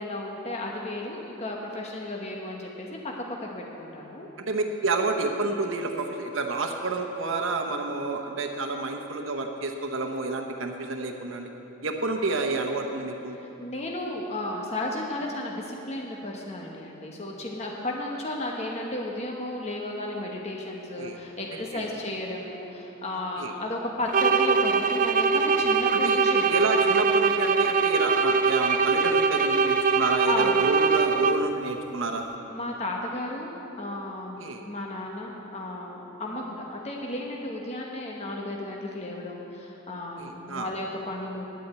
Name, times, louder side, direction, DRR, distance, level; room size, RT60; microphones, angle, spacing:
voice 1, 0.0-4.3 13.4-26.5 30.3-30.6 32.5-33.5 33.8-41.7, left 1 dB, 30° left, -1 dB, 1.1 m, -34 dB
voice 2, 4.4-11.5 11.8-13.4 21.0-21.2 21.5-21.8 23.4-23.5 25.9-26.2 26.5-32.3 34.4-34.7 40.2-40.7, right 3 dB, 70° right, 3 dB, 1.0 m, -29 dB
sound 1, 24.1-31.6, right 5 dB, 40° right, 0.4 m, -22 dB
10.0 x 8.6 x 8.1 m, 2.9 s
head